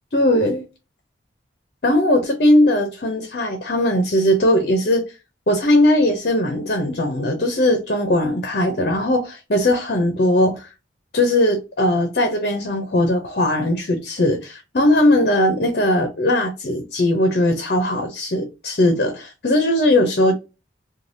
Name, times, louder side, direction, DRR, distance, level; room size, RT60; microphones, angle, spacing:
voice 1, 0.1-0.6 1.8-5.0 5.5-10.7 11.1-20.3, left 1 dB, 55° left, 0.6 m, -19 dB
3.2 x 2.3 x 2.6 m
head